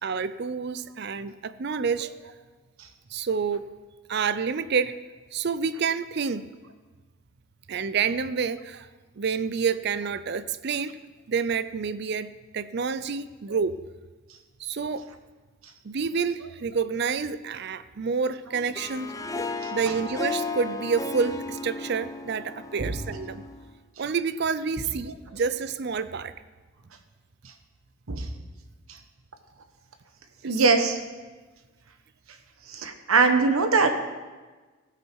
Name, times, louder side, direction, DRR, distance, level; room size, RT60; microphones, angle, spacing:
voice 1, 0.0-2.1 3.1-3.7 4.1-5.0 5.3-6.5 7.7-8.9 9.2-11.0 11.3-13.8 14.6-15.1 15.8-19.1 19.7-23.4 24.0-26.3 30.4-30.6, right 5 dB, 50° right, 14 dB, 0.5 m, -28 dB
Harp, 18.5-23.8, left 3 dB, 15° left, 0.5 m, -34 dB
voice 2, 30.4-31.0 32.7-33.9, right 4 dB, 85° right, 7 dB, 1.2 m, -21 dB
16.0 x 9.0 x 4.6 m, 1.3 s
head